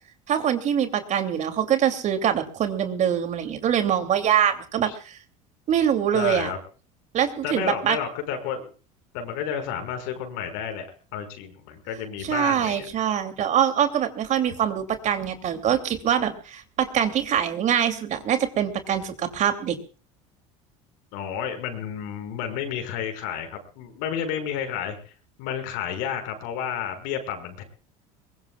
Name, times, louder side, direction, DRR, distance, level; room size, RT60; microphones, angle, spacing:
voice 1, 0.3-5.2 5.7-6.5 7.1-8.0 12.2-19.8, right 9 dB, 45° right, 9 dB, 2.9 m, -24 dB
voice 2, 6.1-6.6 7.4-8.7 9.1-12.9 21.1-24.9 25.4-27.6, left 8 dB, 75° left, 5 dB, 6.0 m, -31 dB
23.0 x 21.0 x 2.4 m, 0.38 s
supercardioid pair, 105°, 17 cm